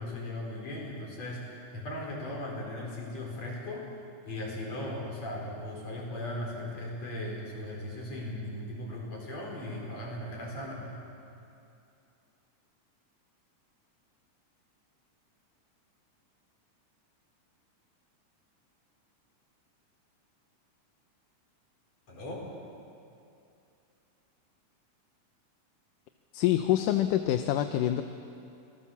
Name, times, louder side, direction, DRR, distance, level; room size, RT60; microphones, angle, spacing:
voice 1, 0.0-3.9 4.2-10.9 22.1-22.4, left 1 dB, 55° left, -2 dB, 5.8 m, -38 dB
voice 2, 26.3-28.0, left 12 dB, 80° left, 8 dB, 2.3 m, -26 dB
26.0 x 19.0 x 7.2 m, 2.6 s
omnidirectional pair, 3.7 m